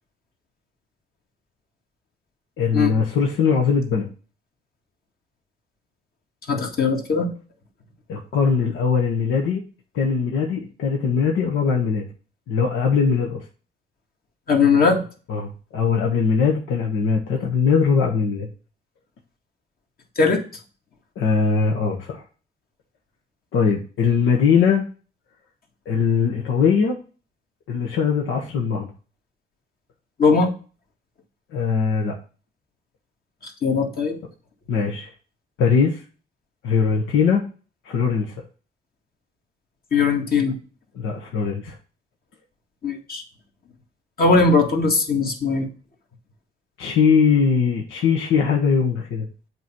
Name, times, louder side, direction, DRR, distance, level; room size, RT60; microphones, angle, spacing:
voice 1, 2.6-4.1 8.1-9.6 9.9-12.1 12.5-13.4 15.3-18.5 21.2-22.2 23.5-24.8 25.9-27.0 27.7-28.9 31.5-32.1 34.7-35.1 35.6-36.0 36.6-37.4 37.8-38.3 40.9-41.8 46.8-49.3, left 6 dB, 80° left, 0 dB, 1.2 m, -21 dB
voice 2, 6.5-7.3 14.5-15.0 20.2-20.4 30.2-30.5 33.6-34.2 39.9-40.6 42.8-43.2 44.2-45.7, left 4 dB, 50° left, 1 dB, 1.9 m, -19 dB
8.0 x 3.1 x 6.0 m, 0.37 s
cardioid pair, 90°, 20 cm